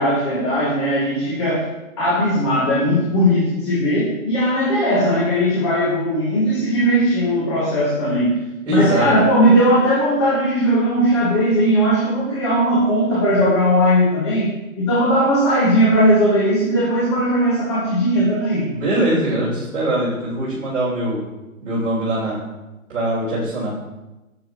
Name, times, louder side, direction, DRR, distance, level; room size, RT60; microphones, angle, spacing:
voice 1, 0.0-1.7 2.0-8.4 8.7-14.5 14.8-18.7, equal, 20° left, -6 dB, 1.2 m, -18 dB
voice 2, 8.7-9.1 18.7-21.3 21.6-22.4 22.9-24.0, right 1 dB, 60° right, -7 dB, 2.9 m, -22 dB
9.4 x 7.4 x 3.0 m, 1.0 s
hypercardioid pair, 165°, 42 cm